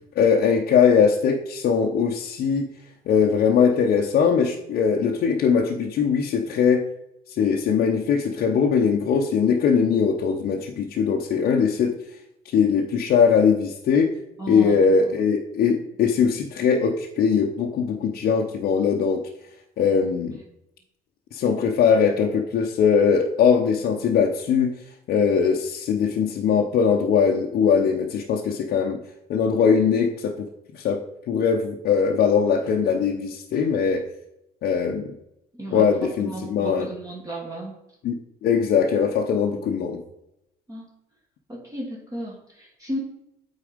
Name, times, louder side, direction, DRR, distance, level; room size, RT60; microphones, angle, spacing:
voice 1, 0.2-2.7 3.1-6.8 7.3-12.0 12.5-14.1 14.5-19.2 19.8-20.4 21.3-24.8 25.1-29.0 29.3-30.5 30.7-31.0 31.3-34.0 34.6-35.1 35.7-36.9 38.0-38.1 38.4-40.0, left 6 dB, 65° left, 0 dB, 0.8 m, -21 dB
voice 2, 14.4-15.0 35.5-35.9 36.2-37.8 39.5-40.0 40.7-40.9 41.5-43.0, right 1 dB, 20° right, -3 dB, 1.7 m, -34 dB
8.6 x 4.1 x 5.1 m, 0.85 s
cardioid pair, 110°, 17 cm